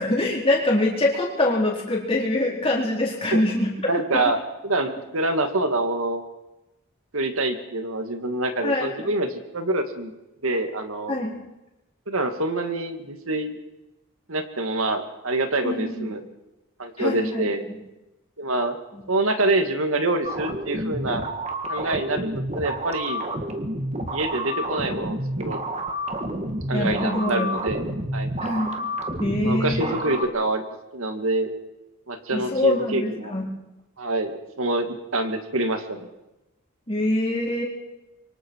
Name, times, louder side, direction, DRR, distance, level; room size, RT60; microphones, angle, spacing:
voice 1, 0.0-3.7 4.1-4.2 8.6-8.9 11.1-11.4 15.6-16.1 17.0-17.5 18.9-19.0 26.7-27.5 28.4-28.9 29.2-29.9 32.3-33.5 36.9-37.6, left 1 dB, 25° left, -3 dB, 4.3 m, -24 dB
voice 2, 3.9-6.2 7.1-10.1 10.4-11.2 12.1-13.6 14.3-16.2 16.8-17.6 18.4-18.8 19.1-21.2 21.7-23.2 24.1-25.6 26.7-27.9 28.1-28.3 29.4-30.6 30.9-31.5 32.1-33.3 34.0-36.1, right 2 dB, 70° right, 6 dB, 2.2 m, -26 dB
sound 1, 20.3-30.3, right 1 dB, 30° right, 1.8 m, -29 dB
26.0 x 24.0 x 4.8 m, 0.97 s
head